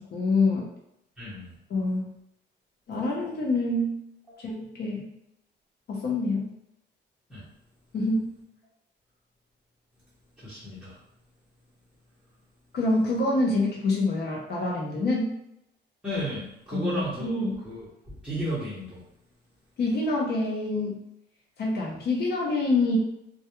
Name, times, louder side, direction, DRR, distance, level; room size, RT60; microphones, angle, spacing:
voice 1, 0.1-0.7 1.7-2.1 2.9-4.0 4.4-5.1 5.9-6.4 7.9-8.3 12.7-15.4 16.7-17.6 19.8-21.0 21.6-23.0, left 2 dB, 60° left, -3 dB, 0.6 m, -26 dB
voice 2, 1.2-1.5 4.3-4.4 7.3-7.5 10.4-11.0 16.0-17.8 18.1-19.0, equal, 5° right, -13 dB, 0.9 m, -34 dB
2.2 x 2.2 x 2.9 m, 0.80 s
cardioid pair, 145°, 19 cm